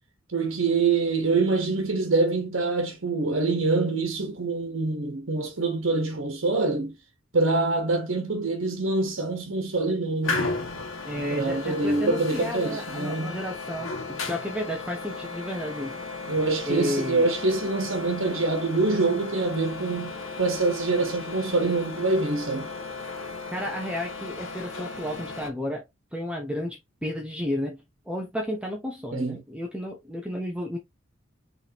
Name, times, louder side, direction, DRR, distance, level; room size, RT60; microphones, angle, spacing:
voice 1, 0.3-6.9 7.3-10.5 11.3-13.4 16.3-22.7 29.1-29.4, right 3 dB, 80° right, 1.2 m, -25 dB
sound 1, 10.2-25.5, left 3 dB, 80° left, 1.5 m, -35 dB
voice 2, 11.0-16.0 16.6-17.3 23.5-25.8 26.1-30.8, left 1 dB, 5° right, 0.9 m, -32 dB
5.4 x 3.4 x 2.8 m
head